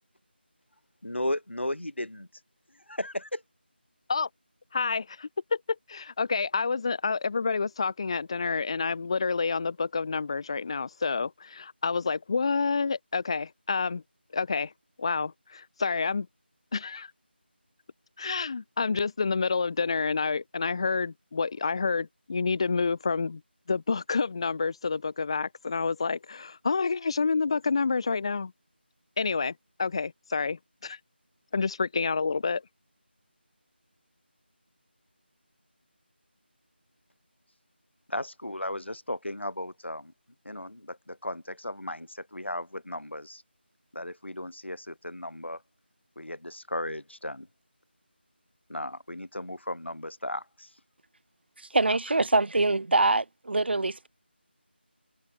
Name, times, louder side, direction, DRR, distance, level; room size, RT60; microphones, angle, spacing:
voice 1, 1.0-2.3 2.9-3.4 38.1-40.1 40.4-43.4 43.9-45.6 46.1-47.5 48.7-50.8, left 1 dB, 85° left, 5.0 m, -35 dB
voice 2, 4.7-5.6 5.9-14.0 14.3-14.7 15.0-16.3 16.7-17.1 18.2-23.4 23.7-28.5 29.2-29.5 29.8-31.0 31.5-32.6, left 4 dB, 30° left, 0.7 m, -28 dB
voice 3, 51.7-54.1, right 2 dB, 65° right, 0.5 m, -24 dB
figure-of-eight pair, 170°, 6 cm